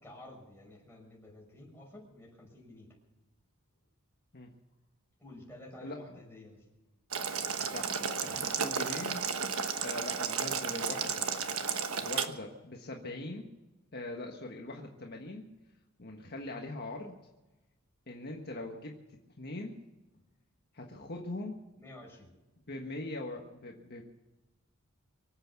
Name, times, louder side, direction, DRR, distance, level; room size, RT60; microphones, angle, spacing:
voice 1, 0.0-2.9 5.2-6.6 21.8-22.3, left 1 dB, 10° left, -1 dB, 5.8 m, -51 dB
voice 2, 5.8-6.2 7.6-9.3 9.8-11.3 12.0-13.5 13.9-15.5 16.0-17.2 18.1-19.8 20.7-21.6 22.7-24.0, left 2 dB, 50° left, 1 dB, 1.5 m, -42 dB
Boiling, 7.1-12.3, right 6 dB, 80° right, 1.2 m, -33 dB
24.5 x 8.3 x 7.1 m, 1.1 s
head